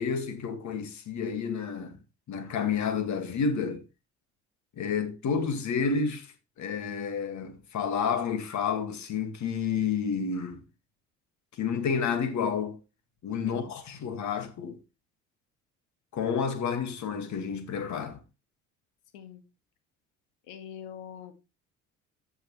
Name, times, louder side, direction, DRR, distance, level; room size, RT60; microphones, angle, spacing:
voice 1, 0.0-1.9 2.3-3.8 4.8-6.3 6.6-10.6 11.6-12.8 13.2-14.8 16.1-18.2, left 6 dB, 50° left, 2.0 m, -30 dB
voice 2, 20.5-21.3, left 9 dB, 65° left, 1.8 m, -43 dB
14.0 x 6.8 x 3.2 m
figure-of-eight pair, 55°, 37 cm